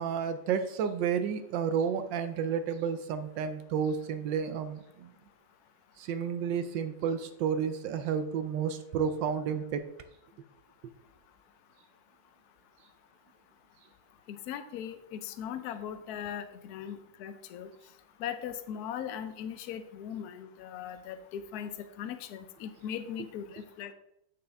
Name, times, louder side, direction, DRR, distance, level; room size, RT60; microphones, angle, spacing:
voice 1, 0.0-5.1 6.0-9.8, right 7 dB, 75° right, 9 dB, 1.2 m, -31 dB
voice 2, 14.3-17.7 18.2-23.9, left 9 dB, 65° left, 9 dB, 1.0 m, -39 dB
8.8 x 5.3 x 3.4 m, 0.80 s
omnidirectional pair, 2.2 m